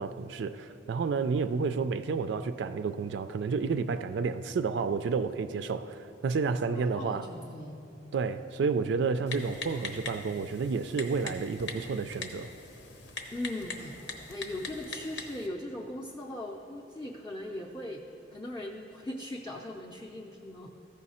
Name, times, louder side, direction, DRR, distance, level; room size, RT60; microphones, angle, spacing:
voice 1, 0.0-7.3 8.1-12.5, right 5 dB, 75° right, 10 dB, 0.3 m, -30 dB
voice 2, 6.7-7.8 13.3-14.0 14.3-18.0 18.3-20.7, left 1 dB, 20° left, -2 dB, 0.5 m, -39 dB
Typing, 9.3-15.5, left 3 dB, 85° left, 0.9 m, -42 dB
14.0 x 5.5 x 4.2 m, 2.6 s
head